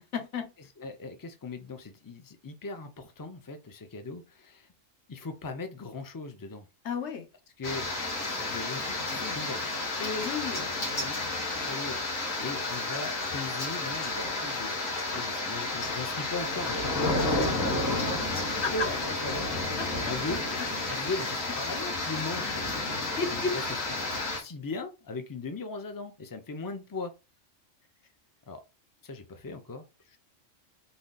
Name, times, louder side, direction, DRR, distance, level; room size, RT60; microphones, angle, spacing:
voice 1, 0.1-0.5 6.8-7.2 10.0-10.7 18.6-18.9 19.8-20.1 20.9-21.0 22.9-23.5, left 5 dB, 60° left, 1.3 m, -33 dB
voice 2, 0.8-4.7 5.1-6.7 7.6-7.9 8.1-9.7 10.5-10.7 10.9-11.1 11.6-18.4 18.7-19.5 20.0-20.4 20.9-22.7 23.3-23.6 24.3-27.1 28.5-28.6 29.0-30.2, left 3 dB, 20° left, 0.5 m, -39 dB
sound 1, 7.6-24.4, left 2 dB, 80° left, 1.9 m, -31 dB
4.0 x 3.2 x 3.9 m
omnidirectional pair, 1.3 m